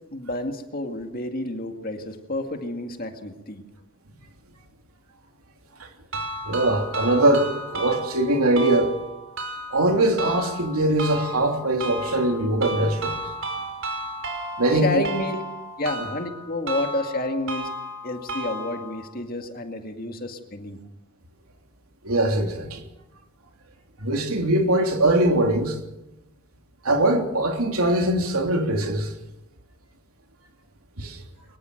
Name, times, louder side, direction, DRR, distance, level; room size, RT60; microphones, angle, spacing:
voice 1, 0.1-3.6 14.7-15.4 15.8-17.7 18.0-20.8, left 1 dB, 40° left, 2.1 m, -30 dB
sound 1, 6.1-19.1, right 1 dB, 60° right, 4.7 m, -34 dB
voice 2, 6.4-8.9 9.7-13.2 14.6-15.1 22.0-22.9 24.0-25.8 26.8-29.1 31.0-31.2, right 1 dB, 80° right, 3.2 m, -22 dB
22.5 x 21.0 x 6.6 m
head